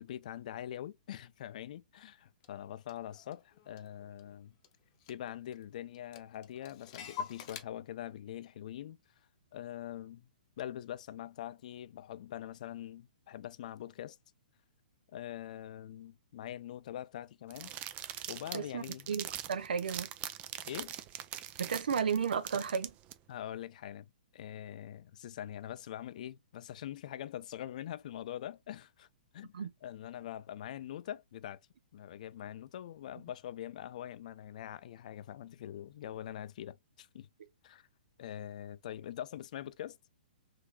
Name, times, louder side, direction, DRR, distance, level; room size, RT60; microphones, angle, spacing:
voice 1, 0.0-4.5 5.1-9.0 9.5-10.3 10.6-14.2 15.1-17.7 18.3-19.1 20.6-20.9 23.3-29.1 29.3-31.6 31.9-37.3 37.6-37.9 38.2-40.0, left 11 dB, 55° left, 0.3 m, -43 dB
Clock, 2.4-2.5 2.9-4.4 4.6-4.7 5.0-5.6 5.9-7.6, left 7 dB, 40° left, 0.7 m, -45 dB
sound 1, 17.5-23.1, right 12 dB, 25° right, 0.4 m, -42 dB
voice 2, 18.5-20.1 21.6-22.9 29.5-29.7, right 6 dB, 70° right, 0.7 m, -33 dB
3.7 x 2.7 x 2.3 m
hypercardioid pair, 125°, 5 cm